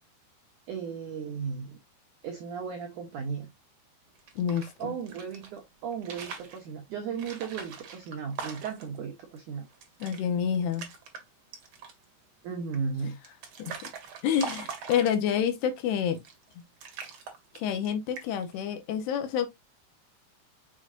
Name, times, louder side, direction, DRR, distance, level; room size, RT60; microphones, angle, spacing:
voice 1, 0.7-1.8 2.2-3.5 4.8-9.7 12.4-13.2, right 6 dB, 90° right, 1.7 m, -35 dB
sound 1, 4.2-5.5 5.9-6.6 7.2-9.0 9.4-9.5 9.7-10.2 10.5-11.2 11.5-12.1 12.7-15.4 16.1-16.5 16.8-17.9 18.2-18.5, right 6 dB, 60° right, 1.7 m, -41 dB
voice 2, 4.4-4.9 10.0-10.9 13.6-13.7 14.2-16.2 17.5-19.5, left 8 dB, 70° left, 2.8 m, -28 dB
6.3 x 6.1 x 2.5 m
omnidirectional pair, 5.3 m